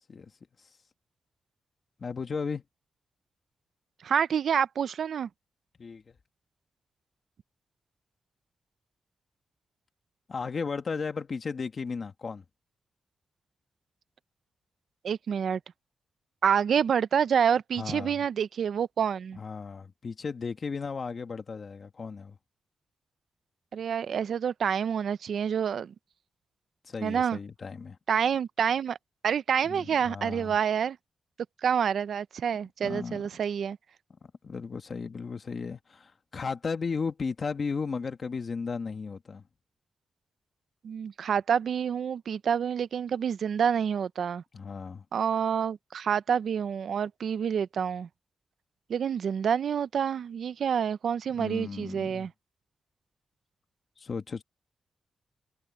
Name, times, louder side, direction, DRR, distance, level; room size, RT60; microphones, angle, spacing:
voice 1, 2.0-2.6 5.8-6.1 10.3-12.4 17.8-18.2 19.3-22.4 26.8-28.0 29.6-30.6 32.8-33.2 34.4-39.4 44.5-45.0 51.3-52.3 54.0-54.4, left 5 dB, 40° left, 1.7 m, -35 dB
voice 2, 4.0-5.3 15.0-15.6 16.4-19.4 23.7-25.9 27.0-27.4 28.1-29.0 29.2-31.0 31.6-33.8 40.8-44.4 45.1-48.1 48.9-52.3, right 7 dB, 70° right, 0.6 m, -27 dB
wide cardioid pair, 145°, 0 cm